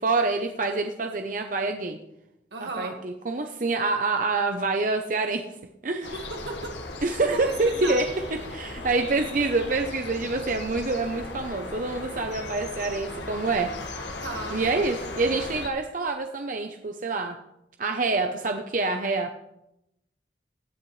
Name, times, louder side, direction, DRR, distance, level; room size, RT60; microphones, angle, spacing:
voice 1, 0.0-2.0 2.6-5.4 5.8-6.1 7.0-8.1 8.5-13.7 14.5-17.4 17.8-19.3, right 3 dB, 50° right, 4 dB, 0.8 m, -26 dB
voice 2, 2.5-2.9 6.1-6.7 7.2-8.0 14.2-14.6, right 3 dB, 80° right, 3 dB, 1.8 m, -35 dB
sound 1, 6.0-15.7, left 2 dB, 85° left, 1.6 m, -37 dB
17.0 x 10.5 x 3.2 m, 0.85 s
head